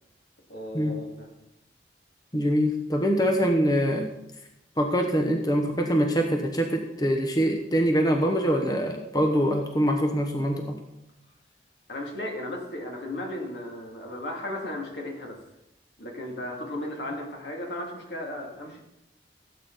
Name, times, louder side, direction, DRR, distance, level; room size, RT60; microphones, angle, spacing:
voice 1, 0.5-1.3 11.9-15.4 16.0-18.8, left 1 dB, 75° left, 0 dB, 2.6 m, -35 dB
voice 2, 2.3-4.1 4.8-10.8, equal, 20° left, 3 dB, 1.0 m, -24 dB
16.5 x 8.6 x 4.1 m, 0.87 s
head